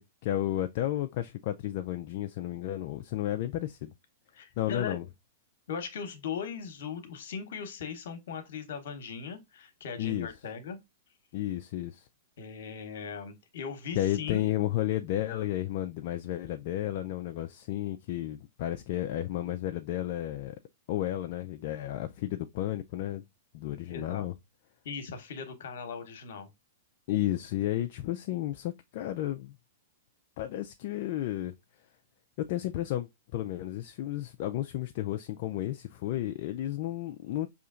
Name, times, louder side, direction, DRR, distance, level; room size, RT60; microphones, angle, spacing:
voice 1, 0.2-3.9 4.6-5.0 10.0-10.3 11.3-12.1 13.9-20.6 20.9-23.2 23.5-24.3 27.1-29.5 30.4-31.5 32.4-37.5, left 13 dB, 55° left, 0.3 m, -32 dB
voice 2, 4.3-5.0 5.7-10.8 12.4-14.4 23.9-24.3 24.8-26.5, left 6 dB, 70° left, 1.0 m, -39 dB
4.9 x 2.8 x 2.4 m
hypercardioid pair, 125°, 0 cm